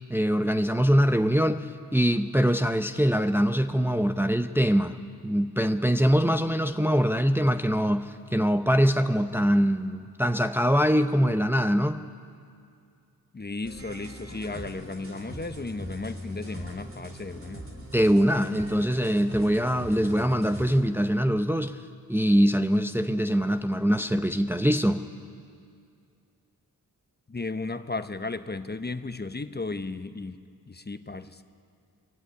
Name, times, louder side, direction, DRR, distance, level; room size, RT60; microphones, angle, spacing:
voice 1, 0.1-5.0 5.2-12.0 17.9-21.8 22.1-25.0, equal, 5° right, 8 dB, 0.8 m, -23 dB
voice 2, 13.3-17.7 27.3-30.4 30.7-31.4, left 3 dB, 25° left, 10 dB, 1.0 m, -35 dB
sound 1, 13.6-20.8, right 1 dB, 35° right, 3.4 m, -41 dB
21.5 x 15.5 x 9.5 m, 2.3 s
cardioid pair, 50°, 38 cm